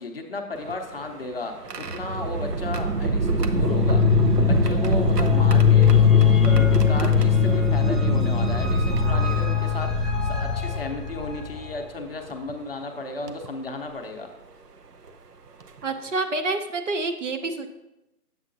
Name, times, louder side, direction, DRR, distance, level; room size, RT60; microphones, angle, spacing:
voice 1, 0.0-6.0 6.4-14.3, left 3 dB, 40° left, 3 dB, 0.6 m, -34 dB
sound 1, 0.6-9.9 10.7-10.8 12.3-12.5 13.3-13.5 15.1-15.2 15.6-15.8, right 3 dB, 85° right, 0.8 m, -25 dB
sound 2, 3.5-11.8, left 9 dB, ahead, 0.3 m, -21 dB
voice 2, 15.8-17.7, right 3 dB, 55° right, 7 dB, 0.7 m, -27 dB
7.8 x 7.5 x 2.6 m, 0.92 s
figure-of-eight pair, 155°, 46 cm